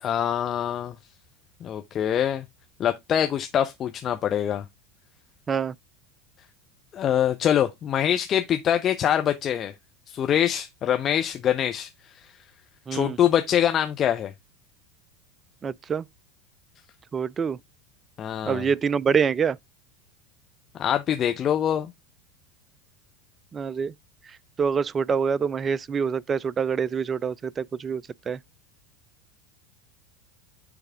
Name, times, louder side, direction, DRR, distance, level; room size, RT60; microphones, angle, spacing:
voice 1, 0.0-0.9 1.6-2.4 2.8-4.6 6.9-9.7 10.1-11.9 12.9-14.3 18.2-18.7 20.8-21.9, left 10 dB, 35° left, 0.6 m, -24 dB
voice 2, 12.9-13.2 15.6-16.0 17.1-17.6 18.5-19.6 23.5-23.9 24.6-28.4, right 6 dB, 25° right, 0.3 m, -26 dB
9.6 x 3.4 x 3.5 m
figure-of-eight pair, 80°, 0 cm